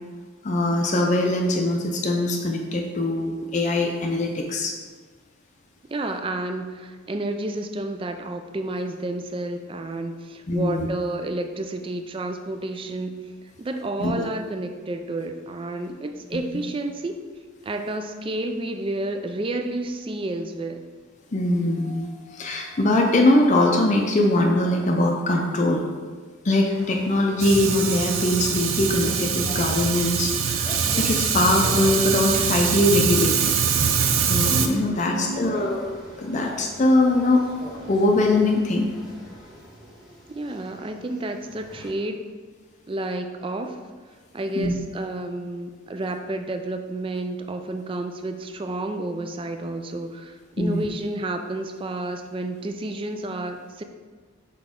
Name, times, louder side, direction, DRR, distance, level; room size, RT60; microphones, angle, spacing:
voice 1, 0.4-4.7 10.5-10.9 14.0-14.3 21.3-25.8 26.4-33.5 34.3-35.8 36.2-37.4 37.9-38.9 44.6-44.7 50.6-50.9, left 1 dB, 35° left, 1 dB, 0.5 m, -22 dB
voice 2, 5.9-13.2 13.6-17.3 17.6-20.8 35.1-35.8 40.3-42.2 42.9-43.8 44.3-53.8, right 2 dB, 25° right, 6 dB, 0.3 m, -30 dB
sound 1, 26.7-41.9, equal, ahead, 1.3 m, -43 dB
Fire, 27.4-34.7, right 7 dB, 75° right, 0.5 m, -23 dB
6.0 x 4.5 x 3.7 m, 1.5 s
head